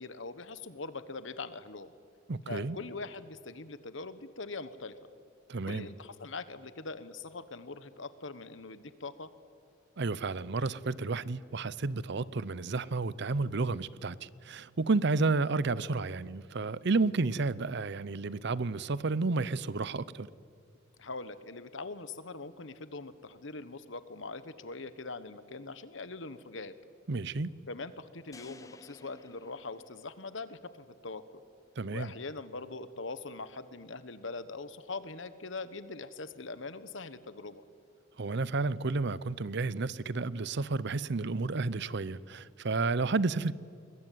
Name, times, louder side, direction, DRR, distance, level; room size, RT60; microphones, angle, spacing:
voice 1, 0.0-1.9 2.5-4.9 5.6-9.3 21.0-26.7 27.7-31.4 31.9-37.6, left 3 dB, 65° left, 1.3 m, -42 dB
voice 2, 2.3-2.8 5.5-5.9 10.0-20.3 27.1-27.5 31.8-32.1 38.2-43.5, right 3 dB, 60° right, 0.7 m, -31 dB
sound 1, 28.3-30.6, left 2 dB, 15° left, 0.9 m, -54 dB
22.5 x 21.5 x 9.4 m
head